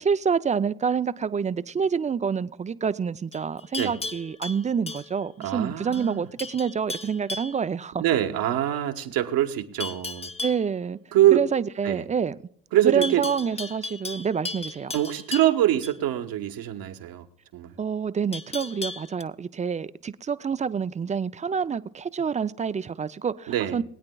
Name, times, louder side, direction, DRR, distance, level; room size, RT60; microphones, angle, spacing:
voice 1, 0.0-8.0 10.4-11.0 11.3-12.4 12.8-15.0 17.8-23.8, right 6 dB, 20° right, 0.4 m, -27 dB
Livestock farm animals working animals, 3.3-5.6 5.9-6.1 6.4-7.6 9.8-10.7 13.0-16.0 18.3-19.2, left 3 dB, 15° left, 0.7 m, -36 dB
voice 2, 5.4-6.3 8.0-10.3 11.1-11.4 11.8-12.0 12.7-13.2 14.9-17.2 17.5-17.7 23.5-23.8, right 12 dB, 70° right, 1.3 m, -24 dB
22.5 x 8.7 x 2.3 m
supercardioid pair, 90°, 37 cm